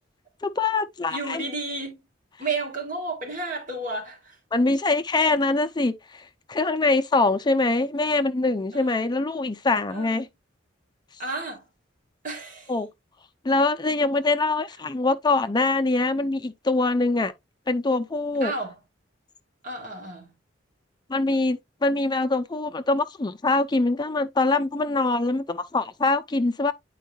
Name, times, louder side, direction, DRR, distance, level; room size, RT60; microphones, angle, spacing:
voice 1, 0.4-1.4 4.5-10.3 12.7-12.9 13.4-17.3 17.7-18.5 21.1-26.7, left 3 dB, 20° left, 0.5 m, -24 dB
voice 2, 1.1-2.0 2.4-4.4 8.7-9.1 9.9-10.2 11.2-11.7 12.2-12.7 18.4-18.8 19.6-20.3, right 3 dB, 45° right, 2.8 m, -32 dB
9.2 x 4.6 x 2.2 m
head